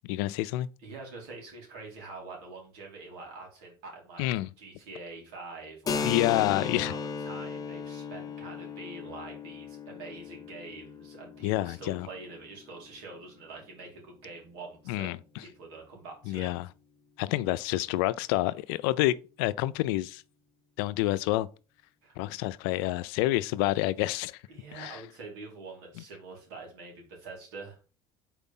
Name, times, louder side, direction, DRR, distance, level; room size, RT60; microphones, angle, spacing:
voice 1, 0.1-0.7 4.2-4.5 6.0-6.9 11.4-12.1 14.9-15.2 16.3-16.7 17.2-20.2 20.8-21.5 22.2-24.4 24.7-25.0, left 17 dB, 85° left, 0.4 m, -28 dB
voice 2, 0.8-16.5 22.0-22.2 24.5-27.8, right 3 dB, 85° right, 2.9 m, -45 dB
Keyboard (musical), 5.9-13.2, left 6 dB, 30° left, 0.8 m, -37 dB
4.5 x 4.0 x 5.4 m
supercardioid pair, 100°, 12 cm